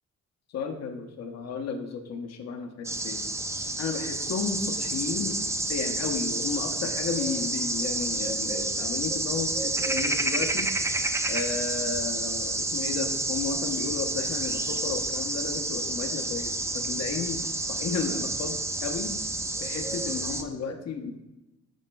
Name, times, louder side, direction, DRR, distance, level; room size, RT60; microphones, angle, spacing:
voice 1, 0.5-3.2 3.8-5.4 5.7-10.7 11.3-19.1 19.6-21.1, left 5 dB, 60° left, 5 dB, 0.8 m, -33 dB
sound 1, 2.8-20.4, right 2 dB, 10° right, 0.4 m, -29 dB
11.5 x 4.2 x 2.2 m, 1.0 s
cardioid pair, 90°, 30 cm